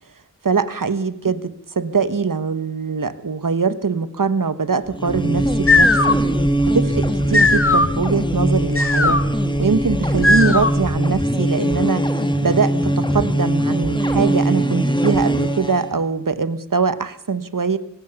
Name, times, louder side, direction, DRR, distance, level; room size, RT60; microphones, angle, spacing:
voice 1, 0.4-6.2 6.6-9.2 9.6-12.1 12.4-17.8, right 5 dB, 90° right, 13 dB, 1.2 m, -22 dB
sound 1, 4.9-15.9, right 1 dB, 15° left, 2.1 m, -21 dB
sound 2, 5.4-11.0, left 2 dB, 45° left, 1.5 m, -19 dB
23.5 x 19.0 x 7.0 m, 0.72 s
wide cardioid pair, 50°, 32 cm